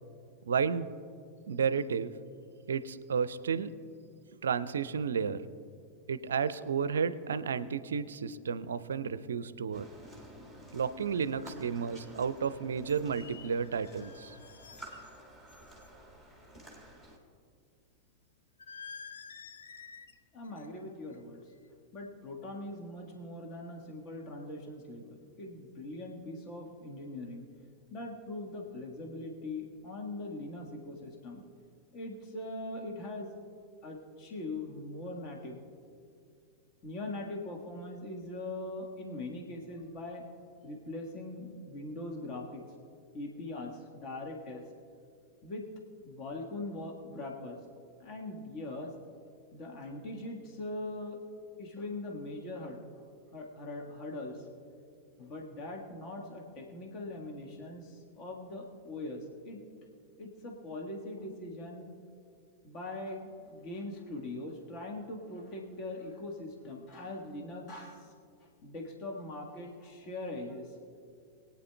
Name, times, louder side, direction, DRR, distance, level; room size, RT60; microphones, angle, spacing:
voice 1, 0.5-0.9 1.5-2.1 2.7-3.7 4.4-5.4 6.1-9.9 10.7-14.4, right 6 dB, 65° right, 16 dB, 0.4 m, -32 dB
sound 1, 9.7-17.2, right 1 dB, 10° left, 1.9 m, -52 dB
sound 2, 11.0-11.1 12.4-12.5 12.9-15.2 15.5-15.9 18.6-20.2 20.4-20.8 21.1-21.4, left 6 dB, 70° left, 0.5 m, -50 dB
voice 2, 20.3-21.4 21.9-27.4 27.9-31.4 31.9-33.3 33.8-35.6 36.8-40.2 40.6-42.6 43.1-44.6 45.4-45.7 46.0-47.6 48.0-48.9 49.5-51.2 51.6-52.8 53.3-54.5 55.2-59.6 60.2-61.9 62.6-68.1 68.4-70.8, left 2 dB, 40° left, 1 dB, 1.5 m, -41 dB
23.0 x 9.2 x 2.3 m, 2.3 s
figure-of-eight pair, 90°, 0 cm